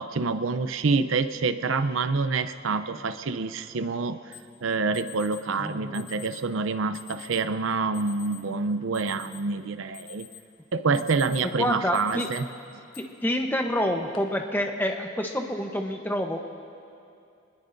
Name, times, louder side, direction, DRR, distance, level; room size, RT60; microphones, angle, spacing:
voice 1, 0.0-4.2 4.6-10.3 10.7-12.5, right 4 dB, 80° right, 10 dB, 0.6 m, -27 dB
Alarm, 4.3-4.4 4.9-5.4 5.9-6.4 6.9-7.4 7.9-8.4 8.8-9.6 9.9-10.5 10.8-11.5 11.9-12.4 12.9-13.0 13.8-14.2, left 12 dB, 85° left, 1.3 m, -45 dB
voice 2, 5.6-6.0 11.6-12.3 13.0-16.4, equal, 10° left, 3 dB, 0.9 m, -28 dB
24.0 x 21.0 x 2.6 m, 2.5 s
head